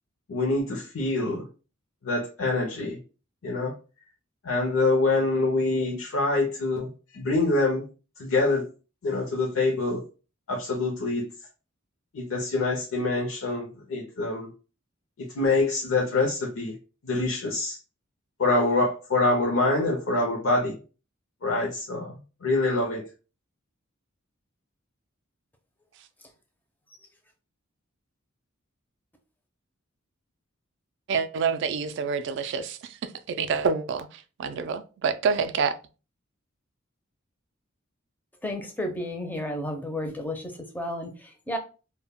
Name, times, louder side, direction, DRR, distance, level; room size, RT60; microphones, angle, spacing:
voice 1, 0.3-1.5 2.0-3.0 3.4-3.8 4.4-7.8 8.2-8.7 9.0-10.0 10.5-11.3 12.1-14.5 15.2-16.8 17.0-17.8 18.4-20.8 21.4-23.0, left 2 dB, 70° left, 0.5 m, -25 dB
voice 2, 31.1-35.8, right 5 dB, 60° right, 0.3 m, -27 dB
voice 3, 38.4-41.6, left 1 dB, 10° left, 0.4 m, -32 dB
2.1 x 2.1 x 3.4 m
head